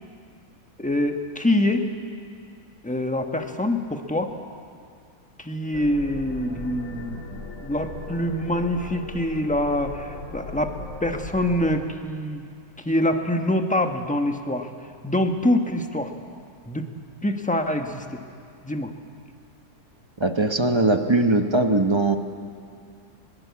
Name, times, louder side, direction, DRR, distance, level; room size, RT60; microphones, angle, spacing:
voice 1, 0.8-1.9 2.8-4.3 5.4-10.7 11.0-12.4 12.8-14.7 15.0-16.1 16.7-16.9 17.2-18.2 18.6-18.9, left 1 dB, 5° left, 5 dB, 1.1 m, -25 dB
sound 1, 5.7-11.9, left 3 dB, 55° left, 2.0 m, -37 dB
voice 2, 20.2-22.2, right 2 dB, 20° right, 6 dB, 0.8 m, -20 dB
22.0 x 21.0 x 8.4 m, 2.3 s
omnidirectional pair, 1.8 m